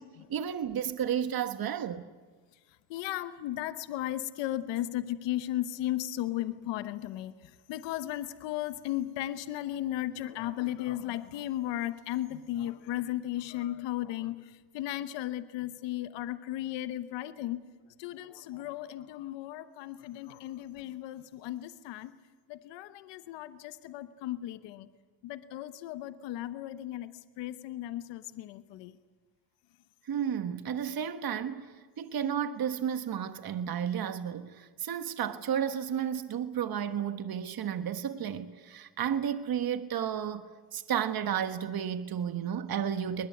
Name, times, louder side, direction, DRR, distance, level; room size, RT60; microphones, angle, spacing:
voice 1, 0.3-2.0 30.1-40.4 40.7-43.3, right 9 dB, 55° right, 1.4 m, -32 dB
voice 2, 2.9-17.6 18.0-22.1 22.5-24.9 25.2-29.0, left 14 dB, 85° left, 1.1 m, -35 dB
23.0 x 20.5 x 9.6 m
supercardioid pair, 60°, 42 cm